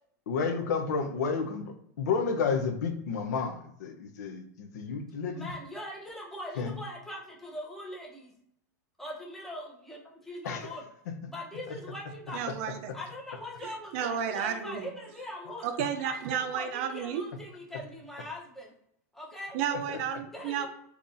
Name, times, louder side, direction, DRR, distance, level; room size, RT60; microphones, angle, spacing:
voice 1, 0.3-5.5 6.6-6.8 10.4-10.7 11.7-11.8 19.9-20.0, left 5 dB, 85° left, 5 dB, 0.6 m, -31 dB
voice 2, 5.3-8.3 9.0-10.8 11.3-12.4 12.9-15.7 16.0-18.7 19.1-19.6 20.3-20.7, left 1 dB, 5° left, -3 dB, 0.7 m, -41 dB
voice 3, 12.3-12.9 13.6-14.9 15.6-17.3 19.5-20.7, right 8 dB, 50° right, 8 dB, 0.5 m, -32 dB
3.8 x 2.9 x 2.5 m, 0.70 s
supercardioid pair, 150°, 9 cm